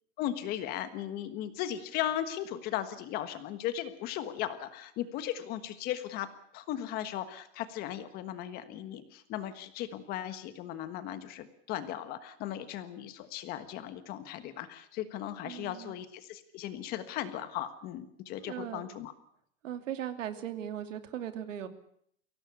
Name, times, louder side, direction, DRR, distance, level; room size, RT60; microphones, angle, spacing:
voice 1, 0.2-19.1, left 11 dB, 25° left, 11 dB, 1.4 m, -37 dB
voice 2, 15.4-16.0 18.4-18.9 19.6-21.7, right 10 dB, 90° right, 9 dB, 2.8 m, -38 dB
23.5 x 17.5 x 8.3 m, 0.67 s
supercardioid pair, 170°, 37 cm